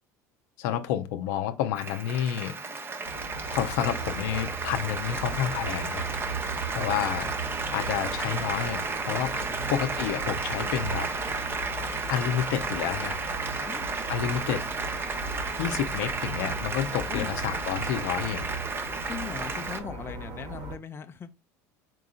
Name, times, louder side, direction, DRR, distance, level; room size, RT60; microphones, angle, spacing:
voice 1, 0.6-2.5 3.5-6.1 6.7-7.3 7.7-11.1 12.1-13.2 14.1-14.6 15.6-18.5, left 10 dB, 75° left, 0.6 m, -29 dB
Applause, 1.8-19.8, right 4 dB, 25° right, 0.8 m, -33 dB
sound 1, 3.0-20.8, right 4 dB, 50° right, 1.5 m, -38 dB
voice 2, 6.6-7.1 9.4-9.8 13.6-13.9 17.1-17.3 19.1-21.3, left 7 dB, 25° left, 0.5 m, -40 dB
4.6 x 3.7 x 2.4 m
hypercardioid pair, 85°, 9 cm